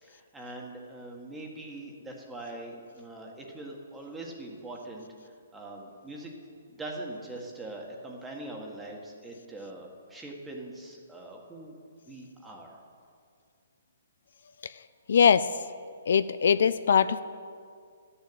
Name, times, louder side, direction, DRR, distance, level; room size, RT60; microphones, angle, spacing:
voice 1, 0.0-6.3 6.7-11.7 12.1-12.8, right 2 dB, 10° right, -1 dB, 1.8 m, -42 dB
voice 2, 15.1-15.6 16.1-17.2, left 7 dB, 65° left, 14 dB, 0.4 m, -22 dB
12.0 x 7.0 x 8.8 m, 2.2 s
hypercardioid pair, 150°, 0 cm